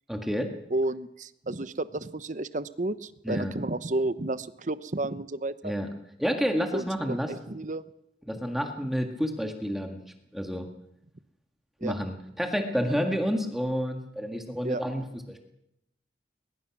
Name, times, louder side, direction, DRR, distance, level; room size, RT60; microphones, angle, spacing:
voice 1, 0.1-0.5 3.2-3.5 5.6-5.9 6.2-7.3 8.3-10.0 10.3-10.7 11.8-15.4, equal, ahead, 4 dB, 1.8 m, -29 dB
voice 2, 0.7-5.7 6.7-6.9 7.3-7.8 11.8-12.0 14.6-14.8, right 2 dB, 45° right, 14 dB, 0.8 m, -31 dB
21.0 x 20.5 x 6.0 m, 0.80 s
head